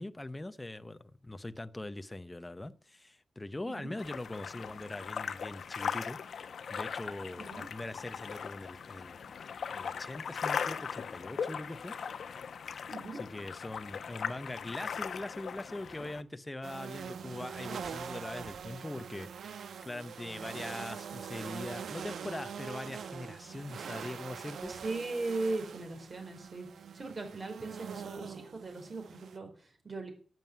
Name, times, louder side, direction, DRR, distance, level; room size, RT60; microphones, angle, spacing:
voice 1, 0.0-9.3 9.7-12.0 13.1-24.7, left 2 dB, 15° left, 0.8 m, -42 dB
sound 1, 4.0-16.2, left 6 dB, 70° left, 1.0 m, -39 dB
voice 2, 12.9-13.2 24.7-26.7 26.9-30.1, right 3 dB, 35° right, 4.6 m, -38 dB
sound 2, 16.6-29.4, right 7 dB, 85° right, 1.0 m, -43 dB
11.5 x 9.2 x 9.4 m
wide cardioid pair, 135°, 0 cm